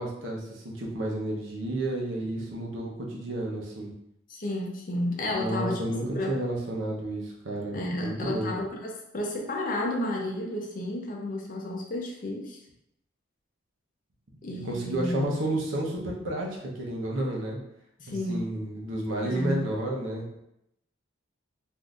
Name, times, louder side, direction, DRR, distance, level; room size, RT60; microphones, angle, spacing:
voice 1, 0.0-3.9 5.3-7.8 8.0-8.5 14.6-17.6 18.1-20.3, right 1 dB, 80° right, -2 dB, 0.8 m, -31 dB
voice 2, 4.3-5.8 6.1-6.3 7.7-12.6 14.4-15.3 18.0-18.4 19.2-19.7, left 1 dB, 45° left, 0 dB, 0.5 m, -32 dB
3.6 x 2.6 x 2.4 m, 0.81 s
head